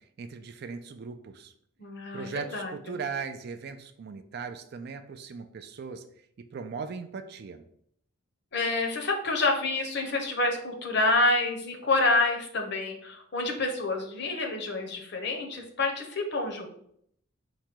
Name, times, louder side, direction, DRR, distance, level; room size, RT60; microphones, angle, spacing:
voice 1, 0.0-1.5 2.1-6.1 6.4-7.7, right 5 dB, 50° right, 9 dB, 0.3 m, -38 dB
voice 2, 1.8-3.0 8.5-16.7, left 2 dB, 50° left, 3 dB, 0.7 m, -28 dB
4.8 x 2.2 x 4.4 m, 0.69 s
head